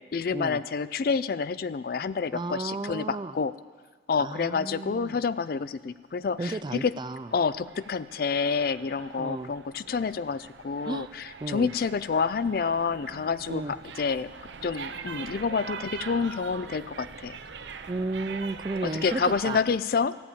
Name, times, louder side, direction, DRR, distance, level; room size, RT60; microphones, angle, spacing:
voice 1, 0.0-3.5 4.1-6.9 7.3-13.6 14.0-14.3 14.6-17.4 18.8-20.2, left 5 dB, 55° left, 16 dB, 0.4 m, -28 dB
voice 2, 2.3-3.4 4.2-5.2 6.4-7.3 9.2-9.5 10.8-11.1 11.4-11.7 13.5-13.7 17.9-19.6, right 2 dB, 25° right, 13 dB, 0.3 m, -33 dB
sound 1, 6.4-19.6, right 5 dB, 80° right, 0.7 m, -43 dB
14.0 x 8.7 x 8.4 m, 1.5 s
head